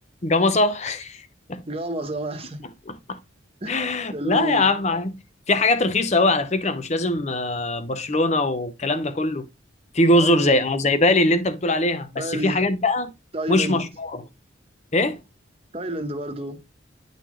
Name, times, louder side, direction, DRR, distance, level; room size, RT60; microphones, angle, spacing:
voice 1, 0.2-1.6 2.9-3.2 3.7-5.2 5.5-9.5 9.9-13.1 13.5-14.2 14.9-15.2, left 2 dB, 35° left, 0.6 m, -22 dB
voice 2, 1.7-2.6 3.6-3.8 4.1-4.7 10.1-10.7 12.1-12.6 13.3-13.8 15.7-16.6, right 1 dB, 30° right, 1.0 m, -30 dB
9.8 x 4.1 x 3.0 m
head